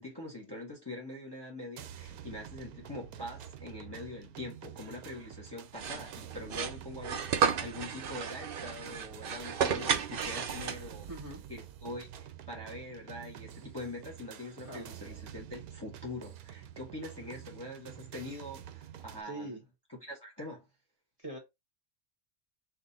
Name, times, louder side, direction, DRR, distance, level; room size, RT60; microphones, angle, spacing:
voice 1, 0.0-11.1 11.5-19.6 19.9-20.7, left 1 dB, 15° left, 1.3 m, -44 dB
sound 1, 1.8-19.2, right 10 dB, 85° right, 1.1 m, -48 dB
sound 2, 5.7-11.1, right 7 dB, 55° right, 0.6 m, -33 dB
voice 2, 11.1-11.4 14.7-14.9 19.2-19.6 21.2-21.4, right 1 dB, 25° right, 1.5 m, -42 dB
6.1 x 2.5 x 2.8 m
omnidirectional pair, 1.5 m